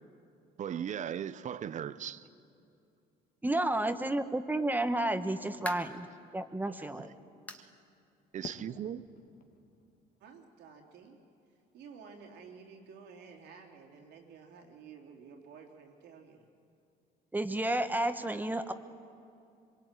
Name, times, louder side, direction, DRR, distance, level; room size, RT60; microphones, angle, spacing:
voice 1, 0.6-2.3 6.7-7.1 7.5-7.7 8.3-9.1, right 9 dB, 45° right, 15 dB, 0.9 m, -38 dB
voice 2, 3.4-6.1 6.3-7.1 17.3-18.7, right 1 dB, 10° right, 9 dB, 1.2 m, -31 dB
sound 1, 5.6-6.1 6.6-6.7 7.5-7.7 8.1-8.2 8.7-8.8 9.9-10.0, left 1 dB, 10° left, 1.6 m, -43 dB
Fireworks, 8.4-11.5, left 6 dB, 55° left, 2.0 m, -51 dB
voice 3, 10.2-11.2 11.7-16.4, right 5 dB, 85° right, 1 dB, 3.5 m, -52 dB
25.0 x 23.0 x 9.1 m, 2.6 s
cardioid pair, 110°, 17 cm